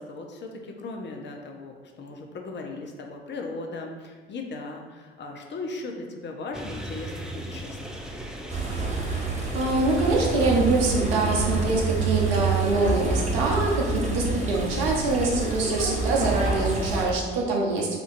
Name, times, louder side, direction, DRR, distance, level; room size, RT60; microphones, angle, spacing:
voice 1, 0.0-8.0, left 3 dB, 40° left, 2 dB, 0.6 m, -37 dB
sound 1, 6.5-12.7, right 1 dB, ahead, 0.4 m, -39 dB
sound 2, 8.5-17.0, right 3 dB, 25° right, 1.0 m, -27 dB
voice 2, 9.5-18.0, right 2 dB, 80° right, -1 dB, 0.7 m, -24 dB
4.3 x 2.5 x 2.5 m, 1.5 s
hypercardioid pair, 50°, 29 cm